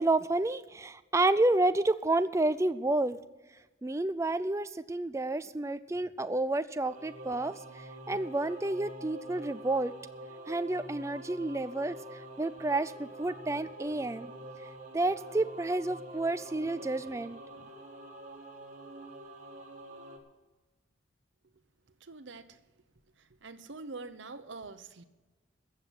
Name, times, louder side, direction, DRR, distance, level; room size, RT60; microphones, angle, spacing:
voice 1, 0.0-3.2 3.8-7.5 8.1-9.9 10.5-12.0 12.4-14.3 14.9-17.4, right 2 dB, 15° right, 0.4 m, -30 dB
Singing / Musical instrument, 6.8-20.2, right 1 dB, 40° right, 1.7 m, -46 dB
voice 2, 22.0-22.6 23.4-25.0, right 3 dB, 65° right, 0.9 m, -44 dB
14.5 x 7.7 x 7.4 m
head